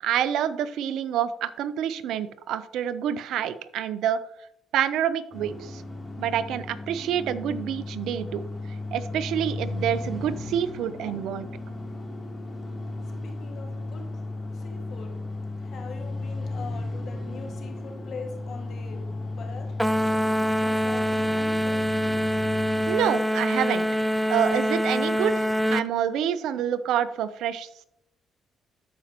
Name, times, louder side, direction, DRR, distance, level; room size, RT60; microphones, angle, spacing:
voice 1, 0.0-4.2 4.7-5.8 6.2-8.4 8.9-11.5 22.9-23.9 24.3-27.8, right 9 dB, 80° right, 0.5 m, -27 dB
sound 1, 5.3-22.9, left 2 dB, 25° left, 2.7 m, -35 dB
voice 2, 12.4-22.9, left 4 dB, 65° left, 1.8 m, -44 dB
sound 2, 19.8-25.9, equal, ahead, 0.3 m, -25 dB
12.5 x 5.1 x 2.9 m
supercardioid pair, 70°, 0 cm